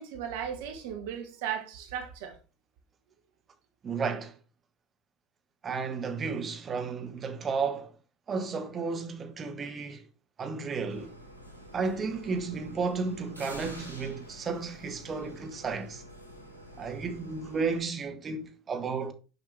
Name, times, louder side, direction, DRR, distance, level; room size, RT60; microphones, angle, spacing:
voice 1, 0.0-2.4, right 8 dB, 60° right, 1.2 m, -36 dB
voice 2, 3.8-4.4 5.6-7.9 8.3-10.0 10.4-11.2 11.7-16.0 16.8-19.1, right 4 dB, 30° right, 1.0 m, -33 dB
sound 1, 10.9-17.8, equal, 85° left, 1.2 m, -47 dB
6.6 x 5.0 x 3.2 m
figure-of-eight pair, 70°, 0 cm